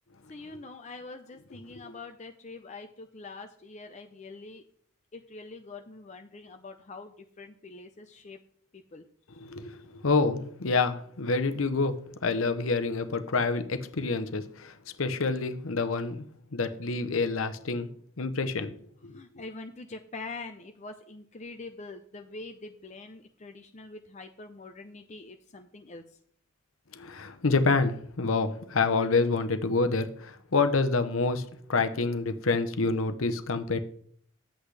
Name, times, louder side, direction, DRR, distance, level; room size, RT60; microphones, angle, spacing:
voice 1, 0.3-4.6 5.1-8.4 8.7-9.0 19.1-26.0, left 3 dB, 35° left, 6 dB, 0.5 m, -44 dB
voice 2, 9.4-17.9 18.2-18.7 19.0-19.2 26.9-33.8, left 3 dB, 75° left, 9 dB, 0.8 m, -27 dB
10.0 x 8.2 x 3.3 m, 0.62 s
head